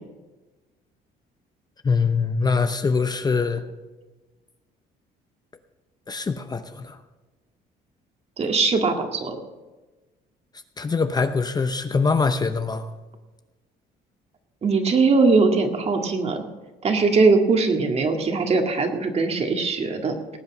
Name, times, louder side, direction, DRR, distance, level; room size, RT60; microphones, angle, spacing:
voice 1, 1.8-3.6 6.1-7.0 10.8-12.8, left 4 dB, 25° left, 8 dB, 0.8 m, -23 dB
voice 2, 8.4-9.4 14.6-16.4 16.8-20.1, right 4 dB, 40° right, 4 dB, 2.0 m, -20 dB
19.0 x 8.1 x 6.2 m, 1.2 s
cardioid pair, 110°, 17 cm